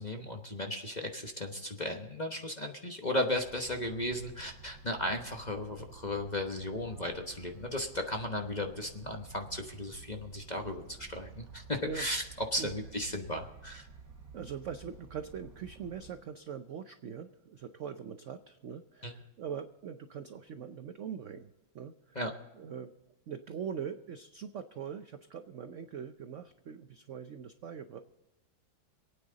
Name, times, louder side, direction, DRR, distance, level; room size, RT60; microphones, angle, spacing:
voice 1, 0.0-12.2 12.5-13.9 19.0-19.1 22.1-22.3, left 1 dB, 30° left, 3 dB, 0.9 m, -35 dB
sound 1, 3.2-16.2, right 5 dB, 35° right, 3.3 m, -53 dB
voice 2, 14.3-21.5 21.7-22.2 22.6-22.9 23.3-28.0, right 7 dB, 75° right, 9 dB, 0.6 m, -42 dB
26.5 x 9.1 x 3.9 m, 1.0 s
omnidirectional pair, 2.1 m